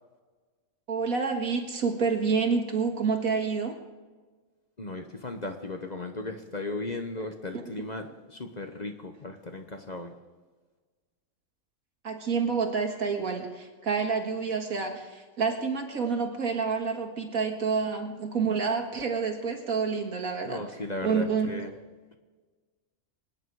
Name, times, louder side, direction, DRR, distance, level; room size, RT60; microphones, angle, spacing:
voice 1, 0.9-3.8 7.2-7.3 7.5-7.6 12.0-20.6 21.0-21.5, right 5 dB, 80° right, 3 dB, 2.3 m, -28 dB
voice 2, 4.8-10.1 20.5-21.7, left 2 dB, 35° left, 5 dB, 1.0 m, -36 dB
24.5 x 9.7 x 4.8 m, 1.4 s
omnidirectional pair, 1.5 m